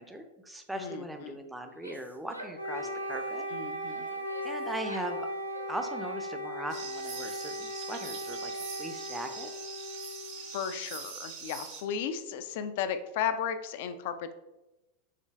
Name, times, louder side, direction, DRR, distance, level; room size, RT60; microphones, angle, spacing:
voice 1, 0.0-3.5 4.4-5.3 5.7-8.5 8.8-9.5, right 1 dB, 5° right, 5 dB, 0.5 m, -39 dB
voice 2, 0.8-1.4 3.5-4.1 10.4-14.3, left 8 dB, 50° left, 10 dB, 0.4 m, -35 dB
Female speech woman speaking / Yell, 1.6-3.3 3.9-5.2 5.5-6.5, equal, 90° right, 0.5 m, -49 dB
Wind instrument woodwind instrument, 2.5-10.6, equal, 75° left, 1.1 m, -37 dB
sound 1, 6.7-11.8, right 6 dB, 45° right, 0.8 m, -43 dB
5.7 x 3.8 x 2.4 m, 1.0 s
figure-of-eight pair, 90°, 0 cm